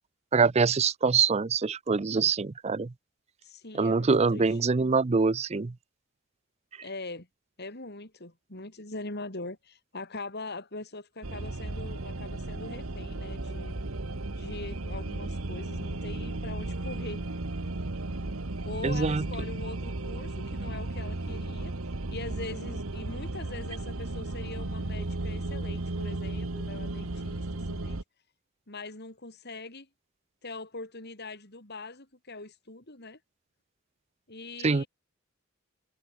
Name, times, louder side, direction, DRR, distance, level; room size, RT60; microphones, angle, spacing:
voice 1, 0.3-2.9 3.7-5.7 18.8-19.2 34.6-34.8, right 4 dB, 30° right, 0.5 m, -24 dB
voice 2, 3.4-4.6 6.8-7.3 7.6-13.8 14.4-17.2 18.6-21.7 22.1-28.0 28.7-29.9 30.4-33.2 34.3-34.9, left 2 dB, 50° left, 4.4 m, -42 dB
sound 1, 11.2-28.0, right 2 dB, 80° right, 1.4 m, -35 dB
head